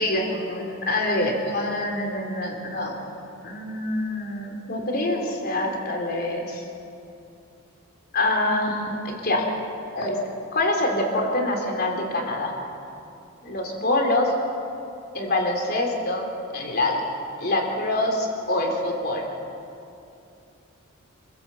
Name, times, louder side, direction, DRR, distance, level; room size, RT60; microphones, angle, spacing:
voice 1, 0.0-2.9 3.4-6.6 8.1-9.4 9.9-10.2 10.5-12.5 13.4-14.3 15.1-16.3 16.5-17.0 17.4-19.3, left 1 dB, 50° left, 2 dB, 3.7 m, -25 dB
27.5 x 15.5 x 7.8 m, 2.7 s
head